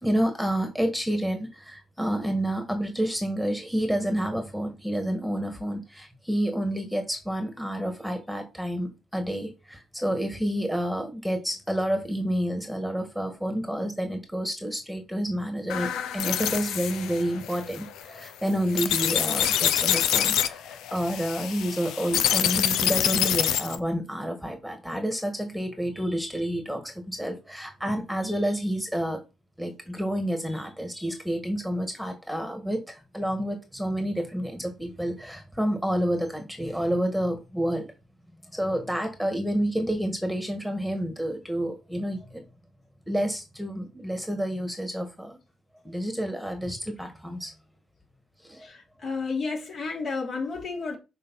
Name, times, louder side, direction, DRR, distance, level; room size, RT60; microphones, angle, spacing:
voice 1, 0.0-29.2 29.6-37.9 38.5-42.4 43.1-45.4 45.8-47.5 48.4-48.7, equal, ahead, 1.7 m, -29 dB
sound 1, 15.7-23.8, left 10 dB, 90° left, 0.7 m, -26 dB
voice 2, 48.6-51.0, left 4 dB, 55° left, 3.5 m, -32 dB
6.8 x 4.7 x 5.8 m
cardioid pair, 90°, 0 cm